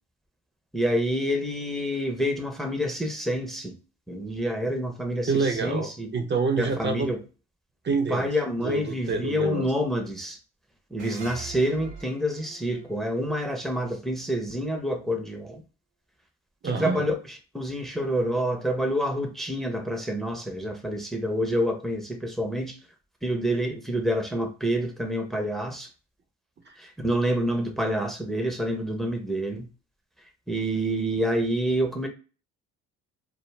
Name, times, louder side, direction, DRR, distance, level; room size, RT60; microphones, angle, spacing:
voice 1, 0.7-3.8 4.1-6.1 6.6-7.2 8.1-10.4 10.9-15.6 16.6-22.8 23.2-25.9 26.8-29.7 30.5-32.1, equal, ahead, 0.7 m, -28 dB
voice 2, 5.3-7.1 7.8-8.3 8.6-9.7 16.6-17.1 26.7-26.8, right 4 dB, 35° right, 0.6 m, -27 dB
sound 1, 11.0-14.3, right 4 dB, 75° right, 0.8 m, -44 dB
2.3 x 2.2 x 3.1 m
supercardioid pair, 60°, 31 cm